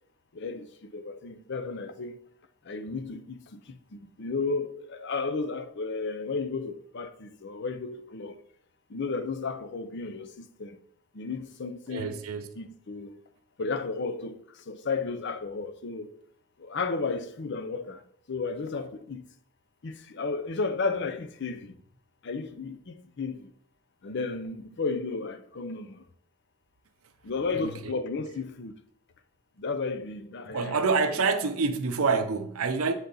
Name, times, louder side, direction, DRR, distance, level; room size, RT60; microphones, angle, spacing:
voice 1, 0.3-2.2 2.6-8.4 8.9-10.8 11.1-12.2 12.6-13.2 13.6-16.1 16.6-18.0 18.3-19.3 19.8-21.7 22.2-23.5 24.0-26.0 27.2-28.8 29.6-30.8 31.1-31.2, left 4 dB, 55° left, 0.6 m, -33 dB
voice 2, 11.9-12.5 27.6-27.7 30.5-32.9, right 4 dB, 75° right, 0.6 m, -27 dB
8.1 x 4.1 x 3.9 m
head